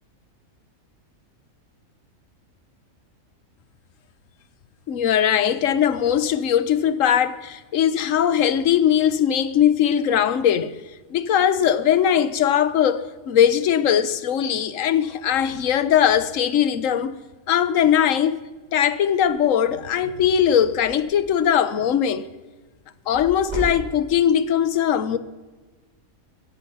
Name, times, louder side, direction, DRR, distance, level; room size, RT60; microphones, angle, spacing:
voice 1, 4.9-10.8 11.1-17.1 17.5-18.4 18.7-22.3 23.1-25.2, left 9 dB, 65° left, 1.2 m, -20 dB
Closing Door, 19.2-19.5 19.9-20.1 20.3-21.5 23.1-24.4, right 2 dB, 50° right, 5.6 m, -34 dB
21.5 x 11.0 x 5.5 m
omnidirectional pair, 1.5 m